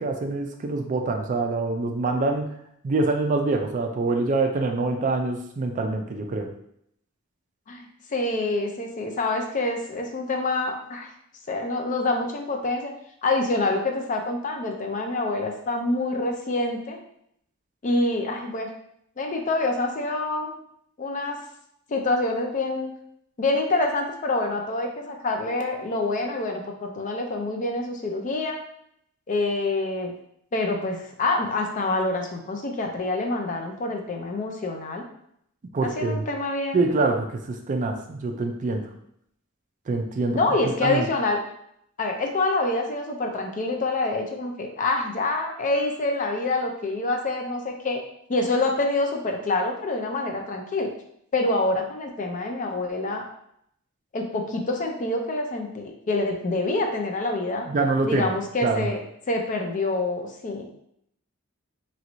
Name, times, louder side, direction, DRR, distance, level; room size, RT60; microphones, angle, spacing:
voice 1, 0.0-2.5 2.8-6.5 35.7-36.2 36.7-38.9 39.9-40.4 40.8-41.1 57.7-58.3 58.6-58.9, right 3 dB, 35° right, 4 dB, 0.3 m, -25 dB
voice 2, 7.7-11.1 11.5-12.9 13.2-17.0 17.8-18.7 19.2-20.5 21.0-21.4 21.9-22.9 23.4-28.6 29.3-30.1 30.5-35.0 35.8-36.8 40.3-41.4 42.0-48.0 48.3-50.9 51.3-53.2 54.1-57.7 58.1-59.0 59.3-60.7, left 2 dB, 35° left, 3 dB, 0.4 m, -26 dB
3.0 x 2.5 x 3.0 m, 0.73 s
head